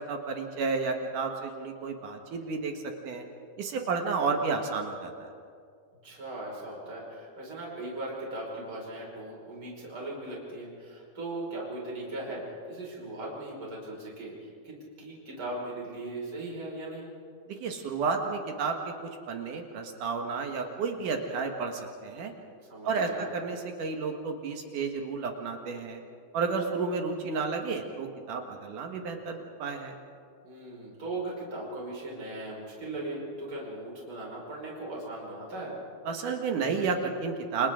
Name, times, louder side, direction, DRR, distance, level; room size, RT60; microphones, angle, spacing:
voice 1, 0.0-2.7 3.0-3.2 3.6-5.3 17.6-18.9 19.3-22.3 22.9-26.0 26.3-29.9 36.1-37.7, right 4 dB, 60° right, 3 dB, 2.5 m, -31 dB
voice 2, 6.0-14.3 14.6-17.1 22.7-23.3 30.4-35.8, right 2 dB, 30° right, -3 dB, 5.9 m, -38 dB
28.5 x 27.5 x 3.8 m, 2.3 s
omnidirectional pair, 5.2 m